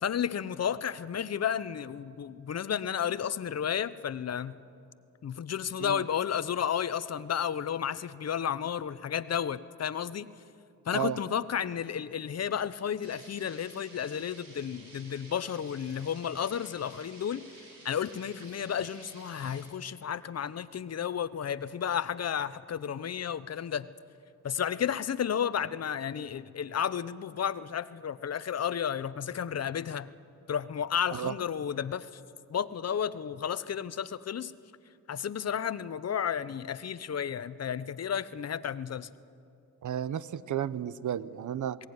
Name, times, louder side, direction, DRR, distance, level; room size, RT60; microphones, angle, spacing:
voice 1, 0.0-4.6 5.2-10.3 10.9-17.5 17.8-23.9 24.4-30.1 30.5-32.1 32.5-34.5 35.1-39.1, left 8 dB, 45° left, 15 dB, 0.8 m, -32 dB
sound 1, 13.0-19.6, right 2 dB, 85° right, 6.3 m, -53 dB
voice 2, 39.8-41.8, right 10 dB, 60° right, 17 dB, 0.8 m, -33 dB
21.0 x 17.5 x 9.5 m, 2.5 s
cardioid pair, 75°, 35 cm